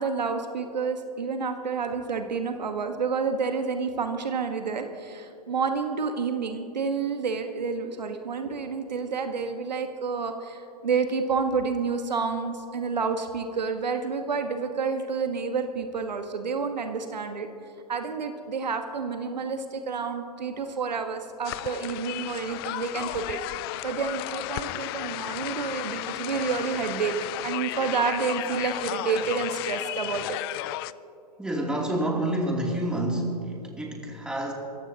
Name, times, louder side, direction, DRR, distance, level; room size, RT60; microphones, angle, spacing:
voice 1, 0.0-17.5 17.9-23.4 23.8-27.1 27.4-30.4, right 5 dB, 85° right, 6 dB, 1.4 m, -29 dB
sound 1, 21.4-30.9, left 17 dB, 35° left, 0.4 m, -34 dB
voice 2, 31.4-34.5, right 1 dB, 5° right, -2 dB, 2.9 m, -28 dB
27.5 x 15.0 x 2.9 m, 2.7 s
hypercardioid pair, 120°, 21 cm